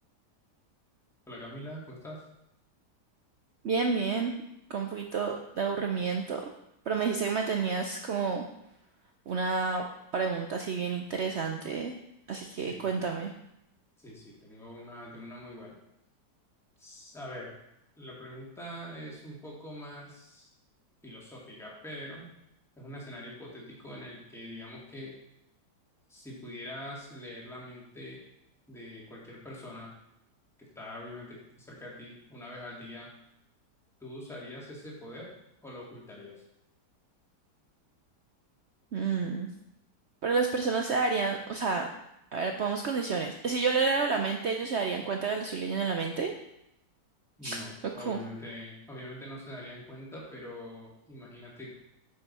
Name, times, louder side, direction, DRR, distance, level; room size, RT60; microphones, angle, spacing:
voice 1, 1.3-2.3 12.6-13.0 14.0-15.8 16.8-17.5 18.0-20.5 21.0-22.3 22.8-25.1 26.1-28.2 28.7-29.9 30.6-33.1 34.0-35.3 35.6-36.4 47.4-51.8, left 1 dB, ahead, -4 dB, 1.8 m, -44 dB
voice 2, 3.6-4.3 4.7-6.4 6.9-8.4 9.3-9.8 10.1-11.9 12.3-13.3 38.9-39.5 40.2-41.9 42.3-46.3 47.4-47.6 47.8-48.2, right 5 dB, 70° right, 3 dB, 0.6 m, -30 dB
9.0 x 5.7 x 4.2 m, 0.83 s
omnidirectional pair, 1.8 m